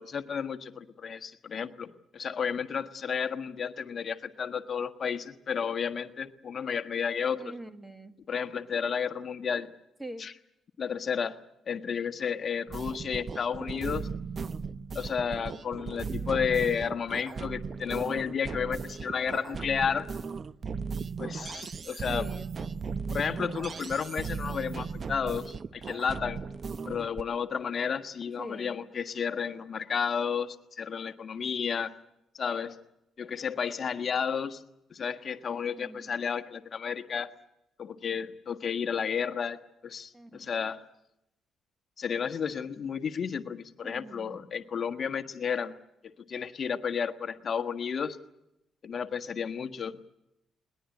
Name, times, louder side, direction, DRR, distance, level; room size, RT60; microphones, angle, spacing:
voice 1, 0.0-7.4 8.3-9.7 10.2-10.3 10.8-11.4 11.7-14.1 14.9-20.1 21.2-22.3 23.1-26.4 26.9-31.9 32.3-32.8 33.2-34.6 34.9-37.3 37.8-40.8 42.0-45.7 46.3-48.2 48.8-50.0, left 6 dB, 50° left, 8 dB, 1.4 m, -32 dB
voice 2, 7.4-8.2 10.0-10.3 16.1-16.7 22.1-23.1 28.4-28.9 35.6-36.2 40.1-40.5 43.8-44.4, right 1 dB, 10° right, 10 dB, 1.6 m, -45 dB
sound 1, 12.7-27.2, right 5 dB, 40° right, 0.8 m, -37 dB
21.0 x 20.0 x 9.8 m, 0.84 s
cardioid pair, 90°, 0 cm